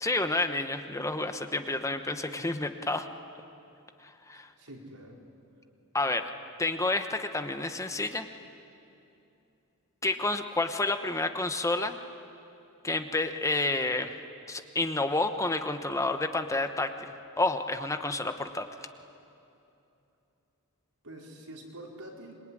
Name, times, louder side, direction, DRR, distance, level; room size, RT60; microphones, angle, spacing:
voice 1, 0.0-3.1 4.0-4.5 5.9-6.3 6.6-8.3 10.0-12.0 12.8-14.2 14.5-18.7, left 2 dB, 15° left, 8 dB, 1.0 m, -30 dB
voice 2, 4.3-5.2 21.0-22.4, right 1 dB, 90° right, -1 dB, 4.6 m, -46 dB
26.0 x 22.5 x 9.8 m, 2.8 s
head